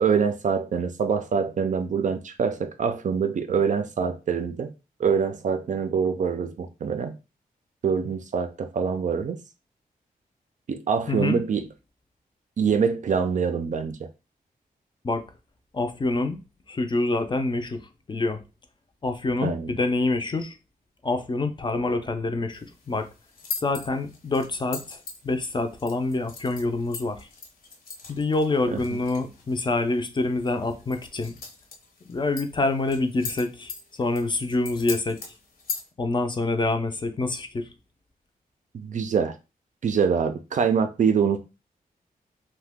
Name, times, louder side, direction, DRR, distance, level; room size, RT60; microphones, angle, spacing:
voice 1, 0.0-4.7 5.0-7.1 7.8-9.4 10.7-11.7 12.6-14.1 19.4-19.7 28.7-29.0 38.7-39.3 39.8-41.5, right 6 dB, 55° right, 0.4 m, -25 dB
voice 2, 11.1-11.4 15.0-15.2 15.7-16.4 16.7-18.4 19.0-20.6 21.0-23.1 23.6-25.0 25.2-27.3 28.1-31.4 32.1-33.7 34.0-35.2 36.0-37.7, left 2 dB, 30° left, 0.4 m, -26 dB
sound 1, 22.5-35.9, left 5 dB, 80° left, 0.8 m, -41 dB
2.8 x 2.1 x 3.4 m
wide cardioid pair, 110°, 15 cm